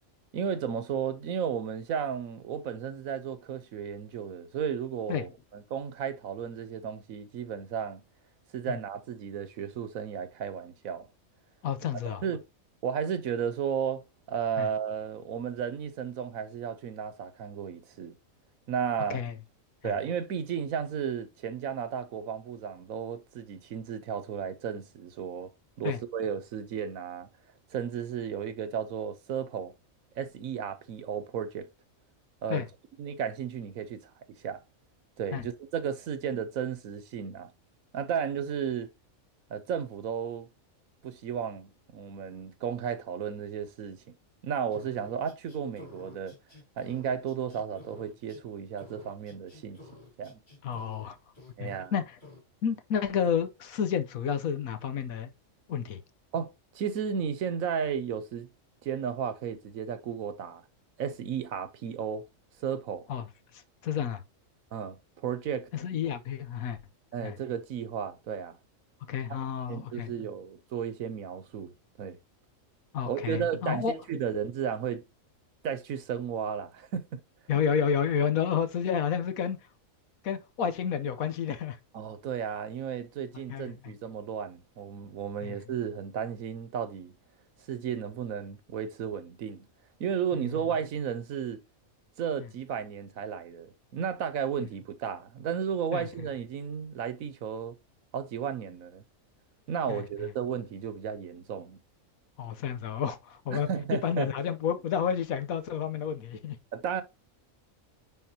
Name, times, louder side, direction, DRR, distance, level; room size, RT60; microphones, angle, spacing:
voice 1, 0.3-8.0 8.5-11.1 12.2-12.4 12.8-14.0 14.3-18.1 18.7-19.2 19.8-25.5 25.8-27.3 27.7-29.7 30.2-31.7 32.4-32.7 33.0-34.1 34.4-34.6 35.2-37.5 37.9-38.9 39.5-40.5 41.0-44.0 44.4-46.3 46.8-49.8 50.2-50.4 51.6-51.9 56.3-58.5 58.8-60.6 61.0-62.3 62.6-63.0 64.7-65.7 67.1-68.6 69.7-71.7 72.0-72.2 73.1-75.0 75.6-77.2 81.9-87.1 87.7-89.7 90.0-91.6 92.2-97.7 98.1-99.0 99.7-101.8 103.5-104.3 106.7-107.0, right 7 dB, 75° right, 1.3 m, -33 dB
voice 2, 11.6-12.2 14.6-14.7 19.1-19.3 19.8-19.9 25.8-26.0 32.5-32.6 35.3-35.4 50.6-51.2 51.6-52.2 52.6-55.3 55.7-56.0 63.1-63.3 63.5-64.2 65.7-66.8 67.2-67.4 69.1-70.1 72.9-73.9 77.5-79.6 80.2-81.8 83.5-83.9 85.4-85.6 90.3-90.5 92.4-92.5 95.9-96.1 99.9-100.0 102.4-106.6, left 7 dB, 80° left, 1.3 m, -30 dB
sound 1, 44.7-48.4 48.8-51.1 51.3-51.9 52.2-52.4, left 2 dB, 35° left, 3.3 m, -51 dB
9.6 x 3.9 x 2.8 m
omnidirectional pair, 1.4 m